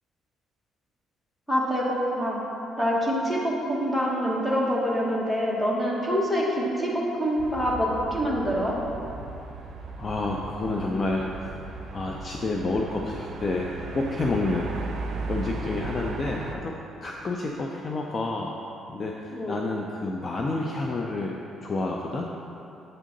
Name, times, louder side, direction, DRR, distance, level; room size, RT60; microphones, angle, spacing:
voice 1, 1.5-2.4 2.7-8.8 19.3-19.6, equal, 5° left, -4 dB, 1.2 m, -26 dB
sound 1, 7.4-16.5, right 3 dB, 60° right, 0.6 m, -37 dB
voice 2, 10.0-11.3 11.9-14.8 15.3-16.7 17.0-18.5 18.9-21.3 21.6-22.3, left 2 dB, 35° left, 0 dB, 0.5 m, -29 dB
7.8 x 3.7 x 5.1 m, 2.8 s
cardioid pair, 115°, 0 cm